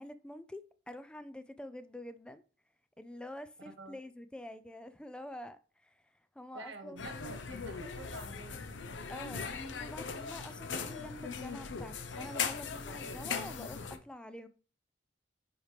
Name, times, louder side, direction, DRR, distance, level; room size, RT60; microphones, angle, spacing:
voice 1, 0.0-2.4 3.0-7.1 9.1-14.5, left 1 dB, 5° left, 0.3 m, -47 dB
voice 2, 6.5-8.9, right 2 dB, 80° right, 1.3 m, -48 dB
sound 1, 7.0-14.0, left 5 dB, 75° left, 0.7 m, -39 dB
9.6 x 4.4 x 3.3 m
head